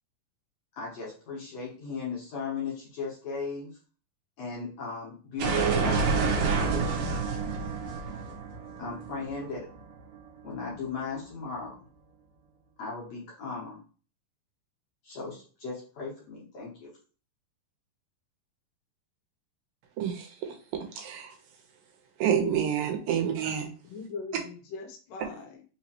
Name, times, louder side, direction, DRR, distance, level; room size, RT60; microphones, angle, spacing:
voice 1, 0.8-3.7 4.4-6.1 6.4-7.1 8.8-9.7 10.4-11.8 12.8-13.8 15.0-16.9, left 4 dB, 60° left, -5 dB, 1.9 m, -37 dB
sound 1, 5.4-10.2, right 5 dB, 65° right, 2.3 m, -28 dB
voice 2, 20.0-21.3 22.2-23.7, right 8 dB, 90° right, 4 dB, 2.6 m, -29 dB
voice 3, 23.1-23.5 23.8-25.6, left 4 dB, 80° left, 3 dB, 2.2 m, -41 dB
5.6 x 3.0 x 2.8 m, 0.38 s
omnidirectional pair, 4.0 m